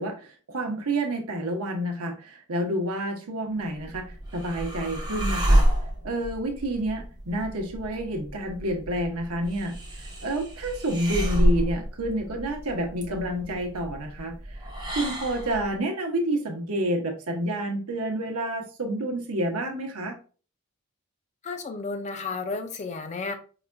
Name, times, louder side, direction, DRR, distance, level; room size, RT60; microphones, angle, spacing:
voice 1, 0.0-5.7 6.0-14.6 14.9-20.2, right 1 dB, 85° right, 3 dB, 0.9 m, -29 dB
sound 1, 3.7-15.7, right 1 dB, 20° right, 0.7 m, -29 dB
voice 2, 21.4-23.3, left 4 dB, 30° left, 7 dB, 0.4 m, -32 dB
4.8 x 2.5 x 2.2 m, 0.37 s
head